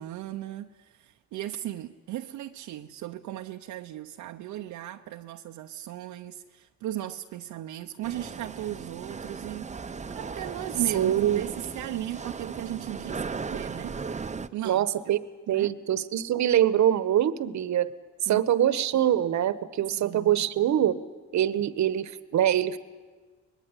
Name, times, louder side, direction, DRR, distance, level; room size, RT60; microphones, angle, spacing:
voice 1, 0.0-9.7 10.1-14.0 14.5-14.9 15.5-15.7 18.3-18.7 19.9-20.5, right 13 dB, 80° right, 0.8 m, -37 dB
sound 1, 8.0-14.5, right 5 dB, 25° right, 0.8 m, -37 dB
voice 2, 10.9-11.4 14.6-15.2 15.5-17.9 18.2-21.0 21.3-22.8, right 11 dB, 65° right, 1.2 m, -24 dB
24.0 x 20.0 x 9.7 m
cardioid pair, 90°, 30 cm